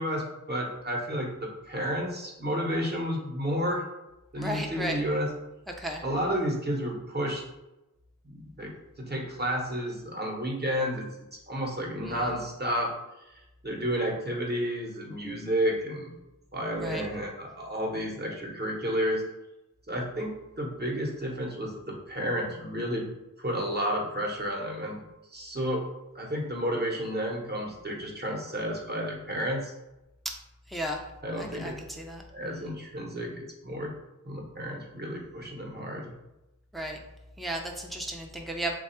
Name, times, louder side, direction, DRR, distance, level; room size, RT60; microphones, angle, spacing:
voice 1, 0.0-3.8 4.3-5.3 6.0-7.4 8.2-11.1 11.5-12.9 13.6-16.1 16.5-19.2 19.9-23.0 23.4-25.0 25.3-25.8 26.1-29.7 31.2-31.8 32.3-33.9 34.2-36.1, equal, 30° right, -1 dB, 0.9 m, -31 dB
voice 2, 4.4-5.0 5.8-6.0 12.0-12.1 16.8-17.0 30.7-31.0 31.4-32.2 36.7-37.0 37.4-38.7, right 1 dB, ahead, 1 dB, 0.5 m, -34 dB
3.2 x 2.3 x 4.3 m, 0.97 s
wide cardioid pair, 90°, 31 cm